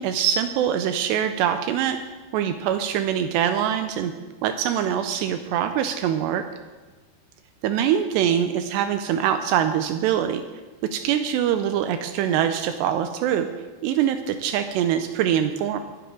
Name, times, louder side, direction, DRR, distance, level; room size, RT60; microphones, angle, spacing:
voice 1, 0.0-2.0 2.3-4.1 4.4-6.4 7.6-10.4 10.9-13.5 13.8-15.8, right 9 dB, 85° right, 8 dB, 2.5 m, -23 dB
20.0 x 10.0 x 3.8 m, 1.3 s
omnidirectional pair, 5.4 m